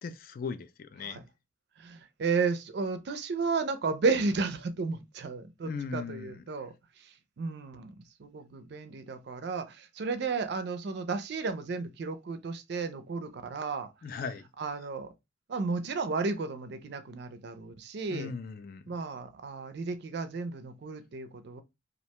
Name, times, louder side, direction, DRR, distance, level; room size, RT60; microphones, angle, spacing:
voice 1, 0.0-1.2 5.6-6.4 14.0-14.5 18.1-18.8, left 5 dB, 45° left, 0.3 m, -38 dB
voice 2, 1.8-14.2 14.6-15.1 15.5-18.3 18.9-21.6, right 4 dB, 55° right, 0.4 m, -33 dB
2.4 x 2.1 x 2.8 m
head